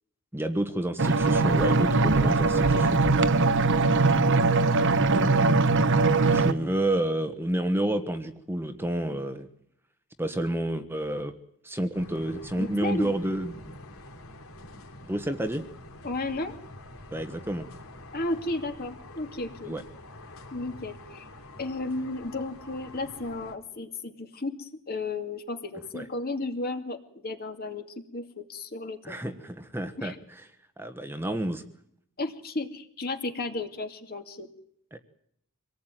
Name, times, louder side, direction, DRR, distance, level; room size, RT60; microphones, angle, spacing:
voice 1, 0.3-3.0 6.3-9.5 10.2-11.3 11.6-13.7 15.1-15.6 17.1-17.6 19.6-19.8 25.9-26.1 29.0-30.4 30.8-31.6 34.9-35.0, right 1 dB, 10° right, 8 dB, 1.3 m, -30 dB
sound 1, 1.0-6.5, right 3 dB, 55° right, 1.2 m, -21 dB
sound 2, 11.9-23.5, left 1 dB, 70° left, 3.4 m, -46 dB
voice 2, 12.6-13.1 16.0-16.5 18.1-19.8 20.5-21.3 21.6-27.9 28.1-29.1 30.0-30.2 32.2-34.5, left 2 dB, 45° left, 6 dB, 2.5 m, -33 dB
25.5 x 18.5 x 9.2 m, 0.72 s
head